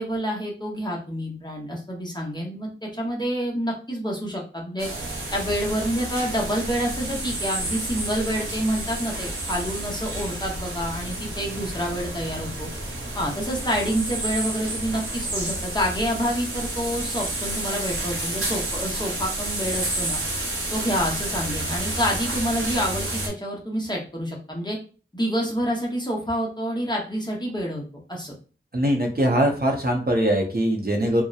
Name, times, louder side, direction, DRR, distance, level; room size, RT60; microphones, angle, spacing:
voice 1, 0.0-4.9 5.3-12.7 13.1-20.2 20.7-24.8 25.1-27.8 28.1-28.3, equal, 20° left, -3 dB, 0.7 m, -28 dB
sound 1, 4.8-23.3, right 1 dB, 90° right, 0.6 m, -30 dB
voice 2, 28.7-31.2, right 1 dB, 50° right, 1 dB, 0.6 m, -22 dB
2.7 x 2.0 x 2.3 m, 0.37 s
wide cardioid pair, 45°, 21 cm